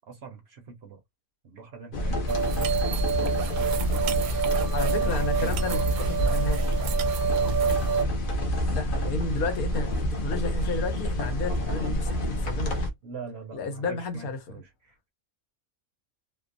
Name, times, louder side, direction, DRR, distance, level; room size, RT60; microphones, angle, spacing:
voice 1, 0.1-1.0 1.4-4.2 4.9-5.6 7.3-8.1 13.0-15.1, right 5 dB, 60° right, 0.7 m, -43 dB
sound 1, 1.9-12.9, equal, 50° left, 0.7 m, -28 dB
sound 2, 2.3-8.0, right 7 dB, 85° right, 1.0 m, -28 dB
voice 2, 4.7-6.7 8.7-12.8 13.5-14.4, left 3 dB, 90° left, 1.3 m, -32 dB
2.8 x 2.0 x 2.5 m
omnidirectional pair, 1.5 m